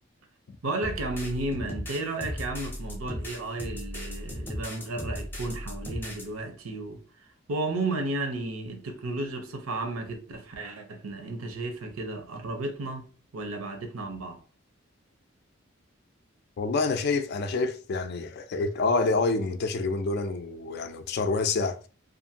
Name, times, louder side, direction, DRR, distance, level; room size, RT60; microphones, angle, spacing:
voice 1, 0.6-7.0 7.5-13.1 13.3-14.4, right 2 dB, 90° right, 0.7 m, -33 dB
sound 1, 0.8-6.3, equal, 10° left, 0.6 m, -36 dB
voice 2, 16.6-21.9, left 3 dB, 50° left, 0.3 m, -27 dB
2.5 x 2.4 x 2.8 m
head